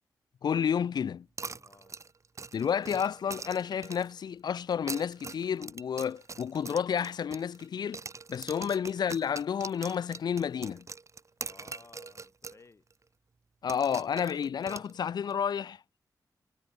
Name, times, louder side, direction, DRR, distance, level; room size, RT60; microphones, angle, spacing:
voice 1, 0.4-1.3 2.5-8.0 8.3-10.9 13.6-15.8, left 7 dB, 70° left, 0.5 m, -30 dB
sound 1, 1.4-4.2 4.7-7.7 7.9-12.6 12.9-13.0 13.7-15.3, right 4 dB, 40° right, 2.4 m, -43 dB
voice 2, 1.5-2.0 11.4-12.8, left 4 dB, 40° left, 5.0 m, -57 dB
wide cardioid pair, 100°, 7 cm